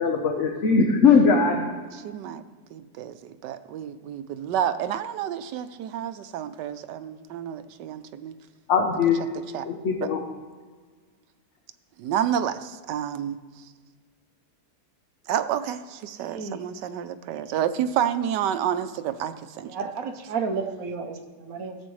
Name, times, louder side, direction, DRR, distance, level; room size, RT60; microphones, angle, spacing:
voice 1, 0.0-1.7 8.7-9.2 9.6-10.2, left 5 dB, 50° left, 2 dB, 1.1 m, -20 dB
voice 2, 2.0-2.4 2.7-8.3 9.5-9.7 12.0-13.6 15.3-19.7, right 9 dB, 90° right, 11 dB, 1.3 m, -29 dB
voice 3, 16.2-16.7 19.6-21.8, right 5 dB, 60° right, 6 dB, 1.2 m, -32 dB
16.0 x 7.7 x 3.2 m, 1.5 s
omnidirectional pair, 1.8 m